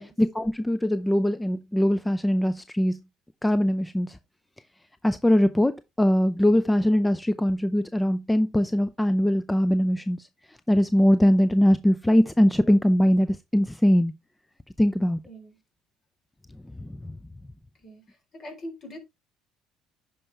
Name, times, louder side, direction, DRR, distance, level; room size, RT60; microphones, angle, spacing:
voice 1, 0.2-3.0 3.4-4.2 5.0-14.1 14.8-15.2 16.8-17.2, equal, 10° left, 0.5 m, -22 dB
voice 2, 17.8-19.0, equal, 45° left, 4.0 m, -42 dB
9.8 x 5.5 x 3.3 m
supercardioid pair, 70°, 0 cm